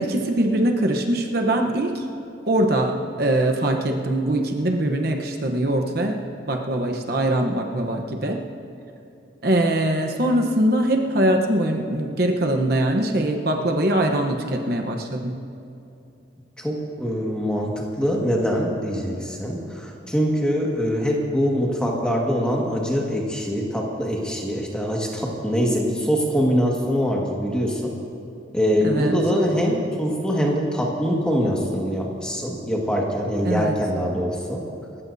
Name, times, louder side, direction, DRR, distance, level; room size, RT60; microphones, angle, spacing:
voice 1, 0.0-2.1 2.5-6.2 6.5-8.4 9.4-15.4 28.8-29.1 33.4-33.8, right 1 dB, 50° right, 3 dB, 1.0 m, -22 dB
voice 2, 16.6-27.9 28.5-34.6, equal, 5° left, -2 dB, 1.8 m, -23 dB
28.0 x 14.5 x 2.7 m, 2.7 s
head